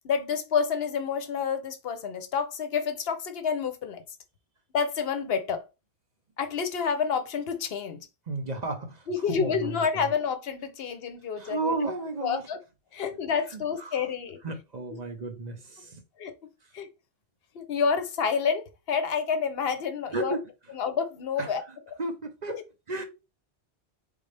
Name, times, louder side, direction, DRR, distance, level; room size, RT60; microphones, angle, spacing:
voice 1, 0.0-4.0 4.7-5.6 6.4-8.1 9.1-11.7 12.2-12.6 12.9-14.4 16.2-16.3 16.7-16.9 17.5-20.4 20.7-21.6 22.5-22.6, left 6 dB, 70° left, 0.9 m, -29 dB
voice 2, 8.3-10.1 11.4-12.4 13.5-14.0 14.4-16.0 20.1-20.4 21.4-23.1, right 3 dB, 45° right, 0.8 m, -34 dB
4.1 x 3.7 x 3.3 m
omnidirectional pair, 1.1 m